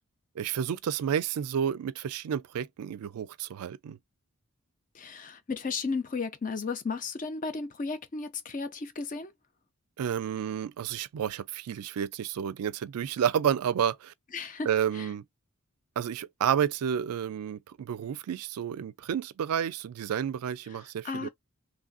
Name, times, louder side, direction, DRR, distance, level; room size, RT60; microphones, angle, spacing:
voice 1, 0.4-4.0 10.0-14.1 14.7-15.2 16.0-21.3, right 8 dB, 85° right, 0.3 m, -30 dB
voice 2, 4.9-9.3 14.3-14.7 14.9-15.1 21.0-21.3, left 4 dB, 35° left, 0.5 m, -34 dB
3.2 x 2.4 x 2.3 m
head